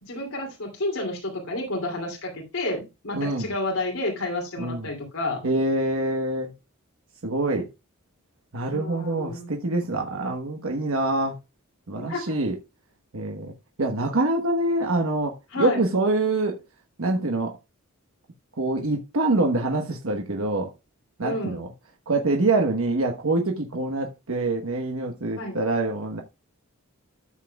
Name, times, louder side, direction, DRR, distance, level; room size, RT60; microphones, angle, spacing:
voice 1, 0.0-5.4 8.7-9.5 11.9-12.2 15.5-15.8 21.2-21.6 25.4-25.6, left 2 dB, 75° left, 2.7 m, -30 dB
voice 2, 3.1-3.5 4.6-4.9 5.4-6.5 7.2-7.7 8.5-11.4 11.9-12.6 13.1-13.5 13.8-16.6 17.0-17.6 18.6-20.7 21.2-21.7 22.1-26.2, right 2 dB, 70° right, 1.2 m, -25 dB
13.0 x 7.5 x 2.3 m
head